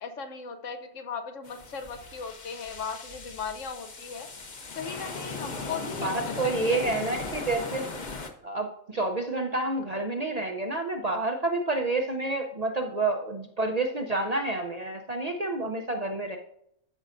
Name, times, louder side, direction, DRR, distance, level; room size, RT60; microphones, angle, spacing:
voice 1, 0.0-4.3 4.7-7.1, left 5 dB, 70° left, 7 dB, 1.2 m, -38 dB
sound 1, 1.4-8.3, left 3 dB, 40° left, 0.9 m, -38 dB
voice 2, 6.0-7.9 8.4-16.4, right 2 dB, 45° right, 3 dB, 0.6 m, -29 dB
14.0 x 5.4 x 2.5 m, 0.73 s
omnidirectional pair, 1.4 m